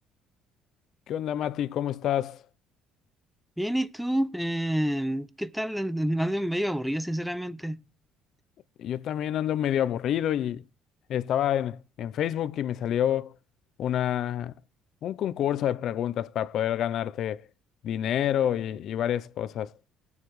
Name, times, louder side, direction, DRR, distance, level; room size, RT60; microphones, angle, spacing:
voice 1, 1.1-2.4 8.8-10.6 11.1-13.3 13.8-14.5 15.0-17.5 17.8-19.7, left 10 dB, 55° left, 0.5 m, -28 dB
voice 2, 3.6-7.8, equal, ahead, 0.6 m, -28 dB
19.0 x 7.1 x 3.2 m
cardioid pair, 130°, 0 cm